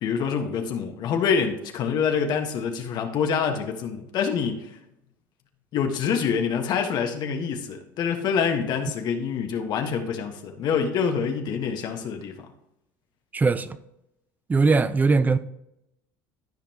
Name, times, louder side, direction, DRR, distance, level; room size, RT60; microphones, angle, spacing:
voice 1, 0.0-4.8 5.7-12.3, left 6 dB, 55° left, 4 dB, 1.5 m, -26 dB
voice 2, 13.3-13.8 14.5-15.4, right 4 dB, 20° right, 14 dB, 0.6 m, -20 dB
13.5 x 5.2 x 3.0 m, 0.82 s
supercardioid pair, 105°, 9 cm